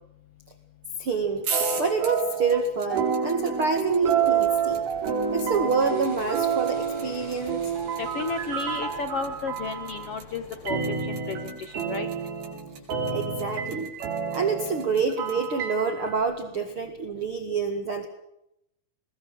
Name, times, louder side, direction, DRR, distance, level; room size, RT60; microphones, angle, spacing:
voice 1, 1.0-1.5 1.8-4.8 5.3-7.6 13.1-13.9 14.3-18.1, right 5 dB, 40° right, 6 dB, 2.2 m, -27 dB
sound 1, 1.4-15.5, right 5 dB, 80° right, 7.2 m, -37 dB
sound 2, 1.5-2.6 2.9-10.1 10.6-16.2, right 7 dB, 65° right, 5.8 m, -29 dB
sound 3, 4.0-11.0, left 2 dB, 35° left, 6.6 m, -47 dB
voice 2, 8.0-10.8 11.1-12.1, left 5 dB, 80° left, 10 dB, 1.3 m, -33 dB
23.0 x 21.0 x 7.7 m, 0.81 s
omnidirectional pair, 4.7 m